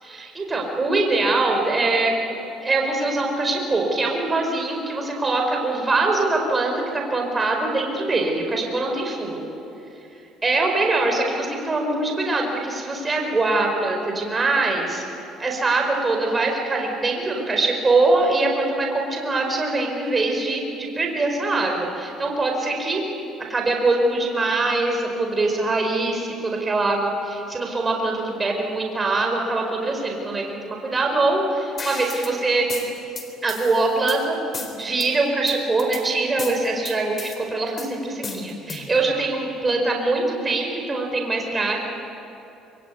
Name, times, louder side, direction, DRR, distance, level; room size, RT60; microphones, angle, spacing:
voice 1, 0.2-2.1 2.6-9.5 10.4-15.0 15.4-23.0 23.5-32.7 33.4-41.8, right 2 dB, 20° right, 1 dB, 4.8 m, -23 dB
sound 1, 31.8-32.3 32.7-34.2 34.5-35.1 35.5-36.0 36.4-37.4 37.8-39.0, left 3 dB, 30° left, 4.0 m, -34 dB
25.0 x 23.5 x 9.5 m, 2.9 s
cardioid pair, 115°, 0 cm